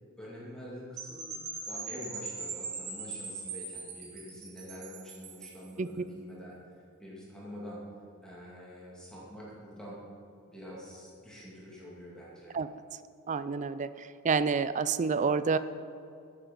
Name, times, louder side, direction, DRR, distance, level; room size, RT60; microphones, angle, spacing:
voice 1, 0.2-1.2 1.7-6.6 7.0-7.8 8.2-10.0 10.5-12.5, equal, 5° left, -7 dB, 2.5 m, -46 dB
Percussion / Wind chime, 1.0-5.7, right 4 dB, 85° right, 2.9 m, -41 dB
voice 2, 13.3-13.9 14.2-15.6, right 5 dB, 35° right, 14 dB, 0.4 m, -28 dB
14.0 x 7.2 x 5.4 m, 2.5 s
head